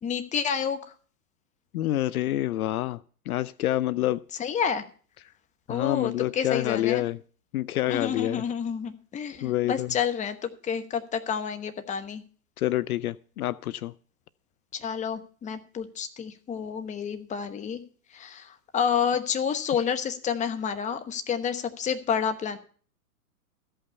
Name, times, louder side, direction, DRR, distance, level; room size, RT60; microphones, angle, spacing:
voice 1, 0.0-0.8 4.4-4.8 5.7-7.0 7.9-12.2 14.7-17.8 18.1-22.6, left 7 dB, 15° left, 1.0 m, -29 dB
voice 2, 1.7-3.0 3.3-4.2 5.7-7.2 7.5-8.4 9.4-9.9 12.6-13.9, left 14 dB, 65° left, 0.6 m, -27 dB
14.0 x 5.7 x 8.2 m
hypercardioid pair, 120°, 46 cm